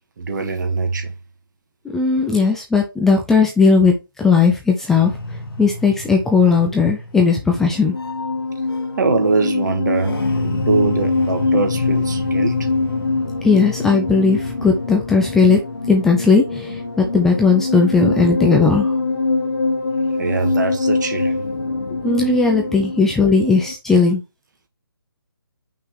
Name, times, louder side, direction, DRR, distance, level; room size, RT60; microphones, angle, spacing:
voice 1, 0.2-1.1 2.2-2.4 9.0-12.7 20.1-21.4 22.5-22.8, right 4 dB, 55° right, 1.7 m, -23 dB
voice 2, 1.9-3.9 4.2-5.1 5.6-7.9 13.4-15.6 15.9-18.9 22.0-24.2, left 4 dB, 5° left, 0.3 m, -16 dB
sound 1, 4.9-23.7, left 3 dB, 85° left, 2.2 m, -24 dB
5.8 x 3.7 x 4.6 m
hypercardioid pair, 155°, 12 cm